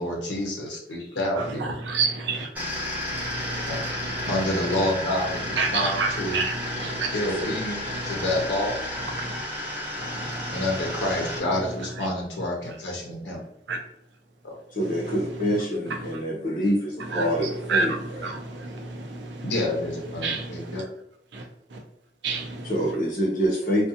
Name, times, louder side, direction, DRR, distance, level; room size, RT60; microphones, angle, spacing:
voice 1, 0.0-1.6 3.6-3.8 4.3-5.9 6.2-6.4 7.1-7.8 8.0-8.8 10.5-13.4 14.4-14.6 19.4-20.8, left 1 dB, 85° left, -1 dB, 0.7 m, -28 dB
voice 2, 1.4-2.5 3.1-4.9 5.3-7.1 7.9-8.4 9.0-9.4 10.0-12.1 12.6-12.7 13.7-13.8 14.8-15.6 15.9-16.2 17.0-20.8 21.3-21.8 22.2-22.9, right 3 dB, 90° right, 3 dB, 0.5 m, -31 dB
sound 1, 2.5-11.4, left 1 dB, 10° right, 0.8 m, -32 dB
voice 3, 14.7-17.9 22.6-23.9, equal, 50° left, -4 dB, 0.8 m, -26 dB
2.5 x 2.3 x 2.6 m, 0.76 s
head